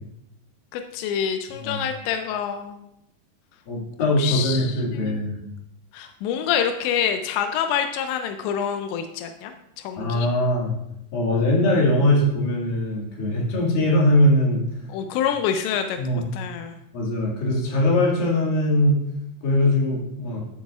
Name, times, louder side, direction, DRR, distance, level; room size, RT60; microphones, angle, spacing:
voice 1, 0.7-2.8 4.2-4.7 4.9-5.2 5.9-9.5 9.8-10.3 14.9-16.0 16.3-16.7, left 8 dB, 90° left, 6 dB, 2.9 m, -26 dB
voice 2, 3.7-5.4 10.0-10.7 11.1-14.6 16.0-16.2 16.9-19.0 19.4-20.4, left 1 dB, 60° left, -3 dB, 3.6 m, -21 dB
12.5 x 8.0 x 2.4 m, 0.80 s
omnidirectional pair, 5.0 m